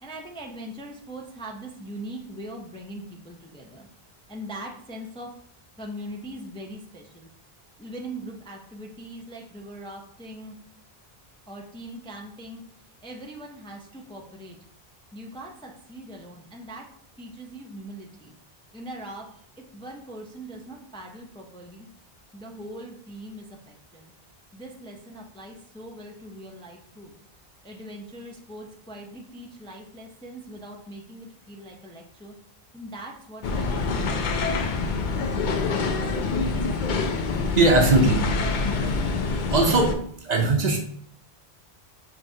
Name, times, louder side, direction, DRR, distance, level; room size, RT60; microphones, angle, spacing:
voice 1, 0.0-3.9 4.3-5.3 5.8-7.3 7.8-10.5 11.5-12.6 13.0-14.6 15.1-16.9 17.2-18.3 18.7-19.3 19.7-21.9 22.3-24.1 24.5-27.1 27.6-32.3 32.7-33.7 34.0-35.1, right 1 dB, 10° left, 0 dB, 0.4 m, -41 dB
sound 1, 33.4-40.0, left 4 dB, 60° left, 0.6 m, -26 dB
voice 2, 37.5-38.2 39.5-39.9 40.2-40.8, right 2 dB, 50° right, 2 dB, 0.7 m, -19 dB
5.9 x 3.2 x 2.7 m, 0.62 s
omnidirectional pair, 1.0 m